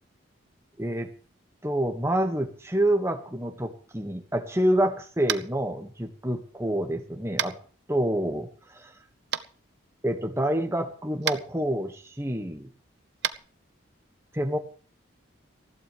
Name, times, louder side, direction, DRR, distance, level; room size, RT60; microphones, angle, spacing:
voice 1, 0.8-1.1 1.6-7.6 7.9-8.5 8.8-8.9 10.0-12.7 14.3-14.6, right 1 dB, 15° right, 5 dB, 1.8 m, -27 dB
Tap, 5.2-5.5 7.4-7.5 9.3-9.4 11.2-11.4 13.2-13.3, right 9 dB, 55° right, 0.8 m, -28 dB
19.5 x 15.0 x 3.4 m, 0.41 s
head